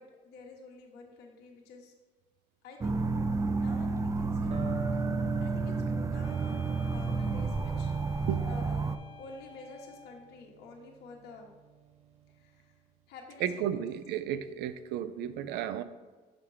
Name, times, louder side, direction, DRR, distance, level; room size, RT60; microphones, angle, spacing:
voice 1, 0.0-1.9 2.6-4.5 4.9-5.0 5.4-8.9 9.2-11.5 12.3-13.8, left 3 dB, 75° left, 0 dB, 1.1 m, -50 dB
sound 1, 2.8-9.0, right 3 dB, 20° right, 0.4 m, -31 dB
Electric guitar, 4.5-12.3, right 6 dB, 40° right, 0.9 m, -43 dB
sound 2, 6.2-10.4, left 3 dB, 30° left, 0.6 m, -52 dB
voice 2, 13.4-15.8, right 10 dB, 80° right, 13 dB, 0.5 m, -33 dB
5.8 x 5.1 x 4.7 m, 1.3 s
supercardioid pair, 85°, 17 cm